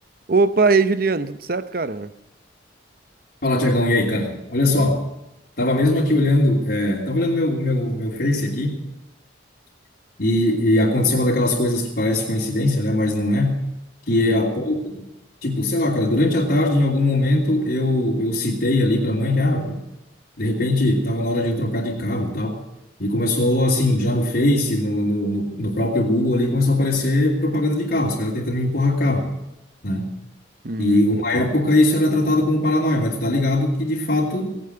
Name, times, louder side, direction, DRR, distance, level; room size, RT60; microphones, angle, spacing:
voice 1, 0.3-2.1 14.1-14.4 30.6-31.0, right 4 dB, 50° right, 13 dB, 0.8 m, -21 dB
voice 2, 3.4-5.0 5.6-8.8 10.2-13.6 14.1-15.0 15.4-19.8 20.4-22.6 23.0-29.3 29.8-30.1 30.8-34.6, left 1 dB, 55° left, -6 dB, 3.0 m, -20 dB
18.0 x 9.6 x 7.8 m, 0.89 s
head